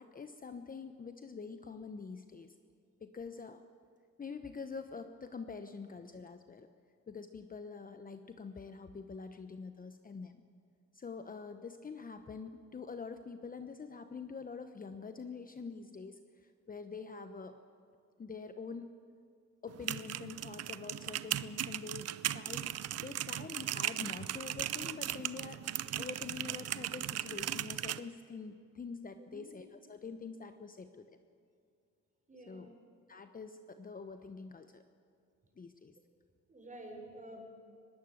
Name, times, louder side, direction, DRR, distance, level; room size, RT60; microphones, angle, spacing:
voice 1, 0.0-2.5 3.0-3.6 4.2-6.7 7.1-10.4 10.9-17.6 18.2-19.0 19.6-31.1 32.5-32.7 33.1-34.8 35.6-36.0, left 5 dB, 30° left, 8 dB, 0.9 m, -46 dB
sound 1, 19.7-28.0, right 11 dB, 55° right, 0.7 m, -38 dB
voice 2, 32.3-32.7 36.5-37.4, right 1 dB, 25° right, 2 dB, 5.6 m, -50 dB
20.5 x 17.0 x 7.9 m, 2.3 s
cardioid pair, 90°, 30 cm